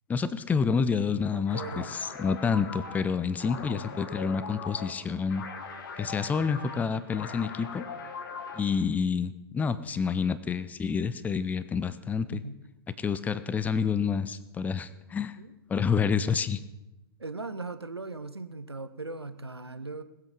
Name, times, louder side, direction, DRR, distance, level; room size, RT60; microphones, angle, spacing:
voice 1, 0.1-5.4 6.0-7.8 8.5-12.4 13.0-15.4 15.7-16.6, left 6 dB, 10° left, 14 dB, 0.6 m, -28 dB
voice 2, 1.3-2.0 12.3-12.6 15.4-15.5 15.8-15.9 17.2-20.0, right 3 dB, 85° right, 12 dB, 0.8 m, -39 dB
sound 1, 1.4-8.8, left 5 dB, 55° left, 1.6 m, -41 dB
20.0 x 7.9 x 5.2 m, 0.97 s
figure-of-eight pair, 105°, 13 cm